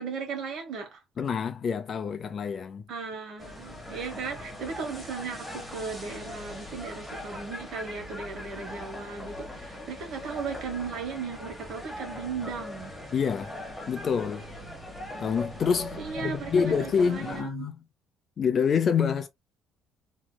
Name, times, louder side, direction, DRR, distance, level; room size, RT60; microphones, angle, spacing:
voice 1, 0.0-1.0 2.9-12.9 16.0-17.7, right 5 dB, 55° right, 1.2 m, -36 dB
voice 2, 1.2-2.9 13.1-13.6 13.9-14.5 15.2-17.8 18.4-19.3, left 6 dB, 35° left, 0.5 m, -27 dB
sound 1, 3.4-17.4, left 1 dB, ahead, 0.8 m, -40 dB
3.1 x 2.9 x 2.2 m
cardioid pair, 160°, 0 cm